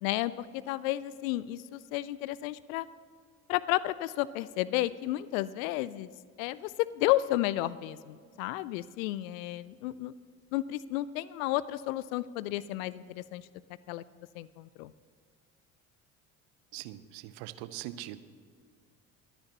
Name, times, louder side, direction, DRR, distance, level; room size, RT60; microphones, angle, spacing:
voice 1, 0.0-2.9 3.5-6.1 6.4-10.1 10.5-13.5 13.9-14.0 14.3-14.9, left 16 dB, 65° left, 18 dB, 0.5 m, -32 dB
voice 2, 16.7-18.2, right 14 dB, 60° right, 14 dB, 0.8 m, -42 dB
22.5 x 10.0 x 3.0 m, 2.1 s
figure-of-eight pair, 60°, 44 cm